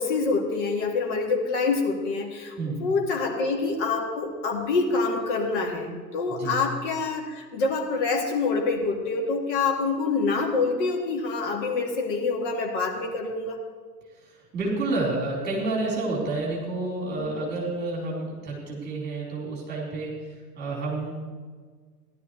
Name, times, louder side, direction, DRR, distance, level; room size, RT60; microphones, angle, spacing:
voice 1, 0.0-13.6 17.1-17.5, left 4 dB, 45° left, 1 dB, 2.1 m, -26 dB
voice 2, 6.3-6.6 14.2-20.1 20.5-21.1, right 2 dB, 20° right, -4 dB, 4.3 m, -29 dB
16.0 x 12.0 x 3.2 m, 1.5 s
figure-of-eight pair, 100°, 50 cm